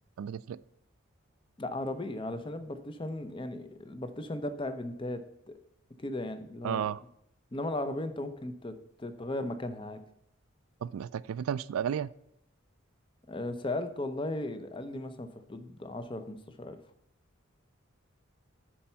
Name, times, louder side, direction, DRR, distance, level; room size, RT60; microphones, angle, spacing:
voice 1, 0.2-0.6 6.6-7.0 10.8-12.1, right 8 dB, 85° right, 0.3 m, -33 dB
voice 2, 1.6-5.6 6.0-6.9 7.5-10.0 13.3-16.8, left 1 dB, 25° left, 0.6 m, -36 dB
10.0 x 4.4 x 5.6 m
head